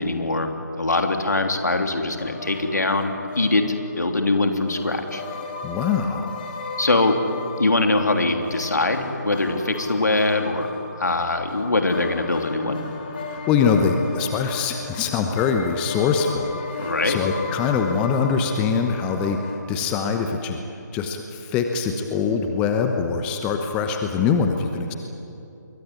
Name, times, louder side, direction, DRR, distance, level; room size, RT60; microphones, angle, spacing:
voice 1, 0.0-5.2 6.8-7.2 7.6-10.7 11.0-12.8 16.8-17.2, left 2 dB, 65° left, 5 dB, 3.3 m, -22 dB
sound 1, 2.2-19.6, left 4 dB, 30° left, 3.3 m, -36 dB
voice 2, 5.6-6.3 13.3-20.6 20.9-24.9, left 6 dB, 10° left, 5 dB, 1.0 m, -23 dB
27.0 x 22.5 x 9.8 m, 2.8 s
figure-of-eight pair, 150°, 10 cm